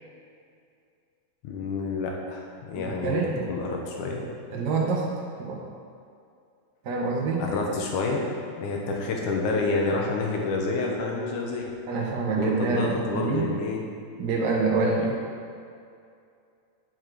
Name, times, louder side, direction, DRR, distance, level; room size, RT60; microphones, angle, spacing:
voice 1, 1.4-3.2 3.5-4.2 7.4-8.3 8.5-11.7 12.4-13.8 15.0-15.1, left 3 dB, 80° left, 0 dB, 2.5 m, -28 dB
voice 2, 2.7-3.5 4.5-5.6 6.8-7.5 11.9-13.5 14.2-15.1, right 4 dB, 65° right, -3 dB, 1.1 m, -26 dB
7.7 x 7.3 x 4.7 m, 2.4 s
omnidirectional pair, 3.6 m